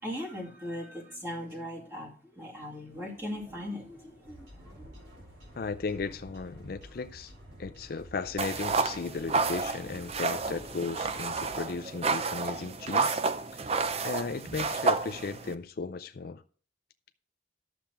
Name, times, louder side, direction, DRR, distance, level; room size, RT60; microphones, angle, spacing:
voice 1, 0.0-4.5 4.7-4.9, left 1 dB, 15° right, 2.3 m, -39 dB
sound 1, 2.9-15.7, equal, 50° right, 3.3 m, -57 dB
sound 2, 4.2-11.7, right 1 dB, 80° right, 4.0 m, -52 dB
voice 2, 5.6-7.3 7.6-13.2 13.5-13.7 14.0-16.4, left 4 dB, 50° left, 0.4 m, -36 dB
sound 3, 8.4-15.5, right 4 dB, 30° right, 0.5 m, -30 dB
11.5 x 7.1 x 4.6 m
head